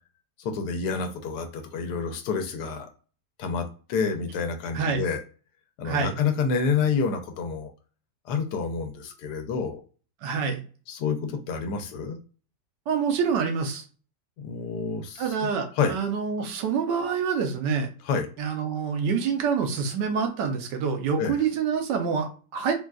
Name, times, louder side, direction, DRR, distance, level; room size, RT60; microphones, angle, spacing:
voice 1, 0.4-2.9 3.4-5.2 5.8-7.7 8.3-9.8 10.9-12.2 14.4-15.5 15.8-15.9 18.0-18.3 21.2-21.4, left 5 dB, 80° left, 6 dB, 1.2 m, -28 dB
voice 2, 10.2-10.6 12.9-13.8 15.2-17.9 18.4-22.7, right 6 dB, 90° right, 4 dB, 1.4 m, -26 dB
3.9 x 2.3 x 2.3 m, 0.38 s
omnidirectional pair, 1.8 m